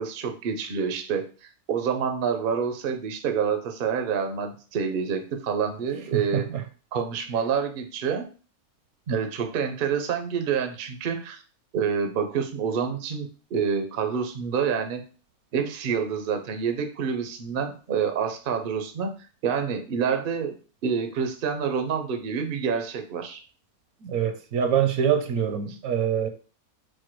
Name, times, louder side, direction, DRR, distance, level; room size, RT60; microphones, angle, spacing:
voice 1, 0.0-6.5 6.9-8.3 9.1-11.4 11.7-15.0 15.5-19.1 19.4-20.5 20.8-23.4, right 6 dB, 55° right, 0.6 m, -27 dB
voice 2, 6.1-6.6 24.0-26.3, right 8 dB, 75° right, 1.1 m, -25 dB
4.4 x 2.2 x 4.5 m
omnidirectional pair, 1.6 m